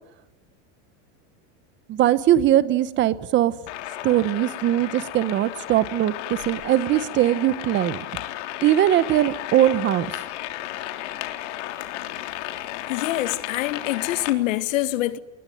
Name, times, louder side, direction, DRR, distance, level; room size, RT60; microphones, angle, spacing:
voice 1, 1.9-3.5 4.0-8.0 8.6-10.1, right 12 dB, 30° right, 1.1 m, -20 dB
sound 1, 3.7-14.3, left 14 dB, 65° left, 3.5 m, -34 dB
voice 2, 12.9-15.2, left 15 dB, 80° left, 2.0 m, -25 dB
29.5 x 21.5 x 9.5 m
supercardioid pair, 160°, 38 cm